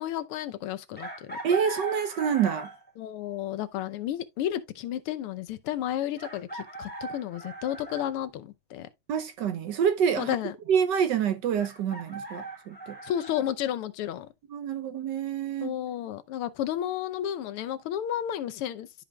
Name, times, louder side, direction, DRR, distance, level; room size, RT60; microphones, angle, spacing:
voice 1, 0.0-1.4 3.0-8.9 10.2-10.5 13.0-14.3 15.6-19.0, left 11 dB, 85° left, 1.7 m, -32 dB
Chicken rooster, 1.0-2.9 4.6-4.7 6.2-8.1 11.6-13.4, right 2 dB, 5° left, 2.0 m, -39 dB
voice 2, 1.4-2.7 9.1-10.4 10.7-13.0 14.5-15.7, right 8 dB, 65° right, 1.2 m, -27 dB
12.5 x 5.1 x 2.3 m
omnidirectional pair, 2.4 m